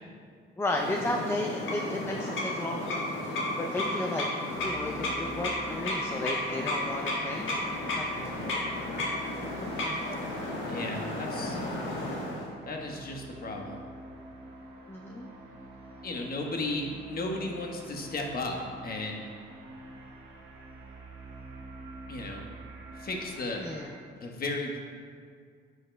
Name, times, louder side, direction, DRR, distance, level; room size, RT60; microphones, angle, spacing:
voice 1, 0.6-3.0 3.6-4.2 4.6-7.6 7.9-8.1 9.6-10.0 14.9-15.3 23.6-23.9, left 1 dB, 10° left, 1 dB, 0.5 m, -34 dB
sound 1, 0.7-12.5, left 1 dB, 75° left, 1.5 m, -33 dB
sound 2, 4.5-23.9, right 2 dB, 75° right, 1.3 m, -47 dB
voice 2, 10.7-11.6 12.7-13.8 16.0-19.3 22.1-22.4 23.0-23.6 24.1-24.8, left 2 dB, 50° left, 1 dB, 1.1 m, -35 dB
9.3 x 6.5 x 2.2 m, 2.1 s
cardioid pair, 90°, 20 cm